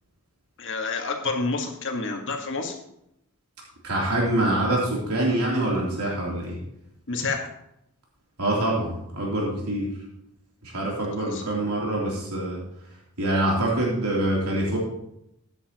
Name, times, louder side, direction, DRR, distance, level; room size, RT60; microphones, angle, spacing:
voice 1, 0.6-2.8 7.1-7.5 11.2-11.4, left 3 dB, 55° left, 2 dB, 1.8 m, -29 dB
voice 2, 3.8-6.6 8.4-9.9 10.6-12.6 13.2-14.8, right 1 dB, 85° right, -4 dB, 3.4 m, -25 dB
14.0 x 9.8 x 3.0 m, 0.79 s
head